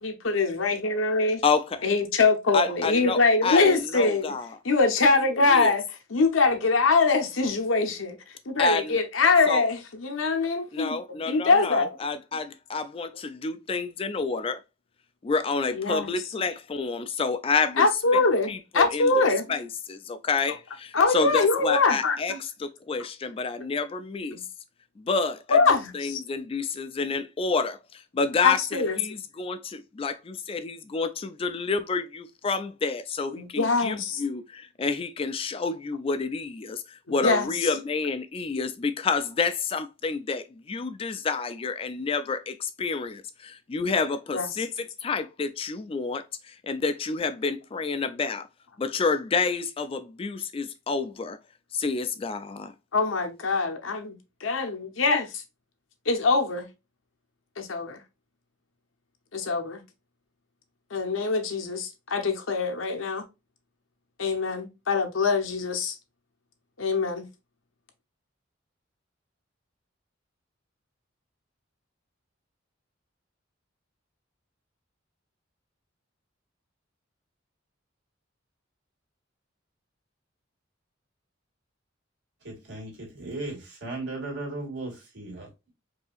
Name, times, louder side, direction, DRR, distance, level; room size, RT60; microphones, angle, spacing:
voice 1, 0.0-1.4 1.8-4.4 4.6-5.8 6.1-8.2 8.5-11.9 15.7-16.1 17.8-19.5 20.9-22.4 24.3-24.4 25.5-26.2 28.4-29.0 33.3-34.2 37.2-37.5 44.3-44.5 52.9-55.4 56.1-56.7 57.6-58.0 59.3-59.8 60.9-63.2 64.2-66.0 66.8-67.3, left 3 dB, 85° left, 0.9 m, -23 dB
voice 2, 1.4-1.8 2.5-4.6 5.5-5.7 8.6-9.0 9.5-9.7 10.7-14.6 15.2-17.9 18.5-24.4 25.0-48.5 48.8-51.4 51.7-52.7, left 4 dB, 30° left, 0.3 m, -29 dB
voice 3, 82.4-85.7, right 2 dB, 60° right, 2.1 m, -36 dB
4.8 x 2.8 x 2.4 m
head